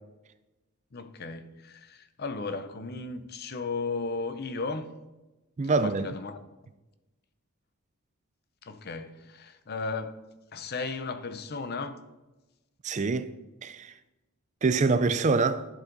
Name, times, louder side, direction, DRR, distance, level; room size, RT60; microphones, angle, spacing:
voice 1, 0.9-4.9 5.6-6.4 8.6-10.2 10.5-12.0, left 4 dB, 45° left, 0.7 m, -35 dB
voice 2, 5.6-6.1 12.8-13.3 13.6-13.9 14.6-15.7, right 4 dB, 35° right, 0.4 m, -25 dB
12.0 x 7.3 x 4.0 m
head